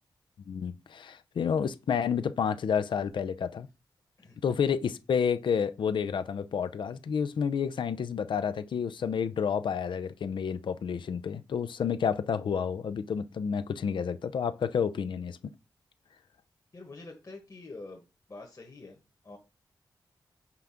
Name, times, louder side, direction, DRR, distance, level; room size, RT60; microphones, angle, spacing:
voice 1, 0.5-3.7 4.4-15.4, left 7 dB, 80° left, 0.5 m, -30 dB
voice 2, 16.7-18.0 18.3-19.4, left 3 dB, 40° left, 1.5 m, -46 dB
5.7 x 3.7 x 5.8 m
cardioid pair, 75°, 8 cm